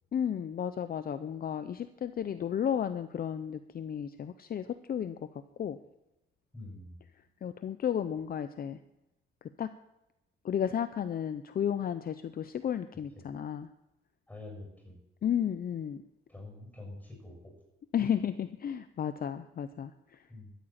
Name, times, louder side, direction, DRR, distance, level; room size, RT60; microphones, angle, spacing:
voice 1, 0.1-5.2 5.6-5.8 7.4-8.8 9.6-9.7 10.4-13.7 15.2-16.0 17.9-20.2, left 9 dB, 45° left, 11 dB, 0.7 m, -33 dB
voice 2, 6.5-7.0 13.1-13.2 14.3-15.0 16.3-17.5 20.3-20.5, left 2 dB, 10° left, 0 dB, 6.7 m, -46 dB
13.0 x 9.4 x 8.8 m, 0.90 s
cardioid pair, 125°, 20 cm